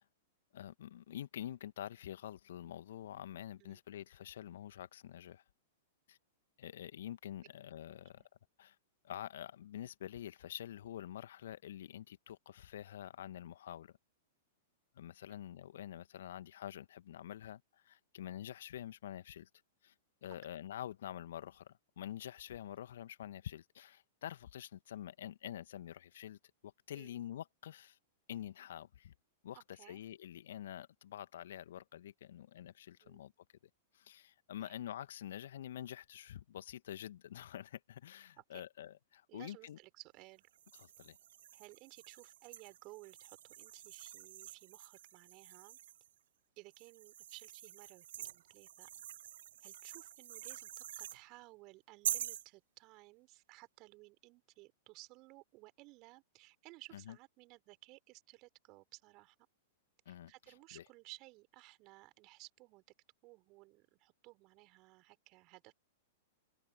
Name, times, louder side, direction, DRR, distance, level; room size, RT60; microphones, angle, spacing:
voice 1, 0.5-5.4 6.1-6.2 6.6-8.2 8.6-8.7 9.0-13.9 14.9-19.5 19.8-19.9 20.2-28.0 28.3-29.1 29.4-33.3 33.9-39.8 40.8-41.2 56.9-57.1 60.0-60.3 60.7-60.8, left 11 dB, 60° left, 1.6 m, -47 dB
voice 2, 7.9-8.3 15.3-15.4 26.9-27.2 29.5-30.0 33.0-33.2 34.6-34.7 38.4-38.6 39.3-40.5 41.5-45.8 46.6-48.9 49.6-59.4 60.1-62.8 63.2-65.7, right 23 dB, 40° right, 5.1 m, -58 dB
sound 1, 40.5-46.1 46.7-51.2 52.0-52.5, right 11 dB, 60° right, 0.6 m, -46 dB
figure-of-eight pair, 100°, 0 cm